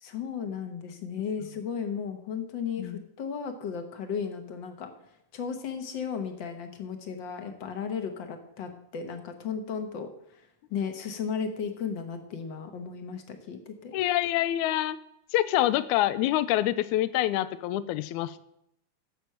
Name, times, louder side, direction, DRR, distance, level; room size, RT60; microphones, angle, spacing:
voice 1, 0.0-4.9 5.3-10.1 10.7-13.9, left 6 dB, 55° left, 6 dB, 1.4 m, -35 dB
voice 2, 13.9-15.0 15.3-18.4, left 14 dB, 85° left, 15 dB, 2.0 m, -26 dB
11.5 x 7.8 x 5.7 m, 0.77 s
omnidirectional pair, 3.5 m